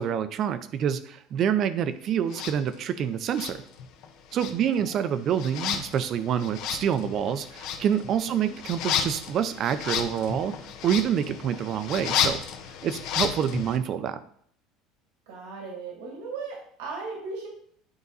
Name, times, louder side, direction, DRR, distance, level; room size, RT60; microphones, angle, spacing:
voice 1, 0.0-3.6 4.3-10.6 10.8-12.4 12.8-14.2, right 8 dB, 45° right, 12 dB, 0.6 m, -27 dB
sound 1, 2.3-2.6 3.3-4.1 4.3-13.8, left 8 dB, 65° left, 0.8 m, -32 dB
voice 2, 4.6-5.0 8.1-8.6 15.3-17.5, right 4 dB, 90° right, -1 dB, 2.2 m, -38 dB
9.7 x 4.0 x 4.0 m, 0.63 s
supercardioid pair, 120°, 0 cm